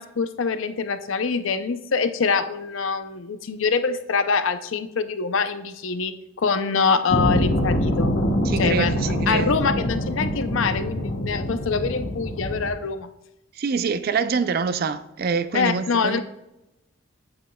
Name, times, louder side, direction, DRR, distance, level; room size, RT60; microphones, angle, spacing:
voice 1, 0.0-6.1 6.4-8.1 8.6-9.0 9.3-13.1 15.5-16.2, left 5 dB, 80° left, 0.5 m, -24 dB
sound 1, 7.1-12.7, equal, 55° left, 1.0 m, -24 dB
voice 2, 8.4-9.6 13.6-16.2, right 5 dB, 50° right, 0.4 m, -25 dB
8.7 x 7.5 x 2.3 m
head